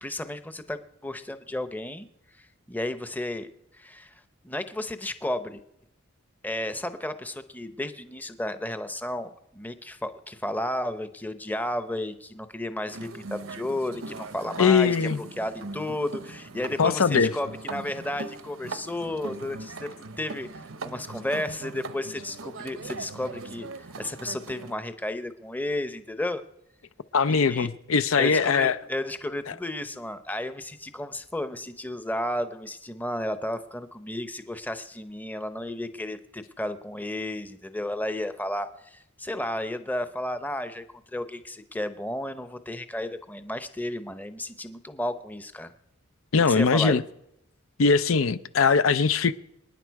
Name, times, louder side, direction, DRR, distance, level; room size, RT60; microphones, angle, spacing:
voice 1, 0.0-2.1 2.4-5.6 6.4-19.9 20.2-20.5 20.8-26.4 27.3-27.7 28.2-40.8 41.1-45.7 46.4-47.0, left 1 dB, 10° left, 0.7 m, -33 dB
sound 1, 12.9-24.7, right 3 dB, 70° right, 0.8 m, -40 dB
voice 2, 14.6-15.2 16.8-17.3 27.1-28.8 46.3-47.0 47.8-49.3, left 5 dB, 75° left, 0.6 m, -21 dB
26.0 x 10.0 x 4.7 m
head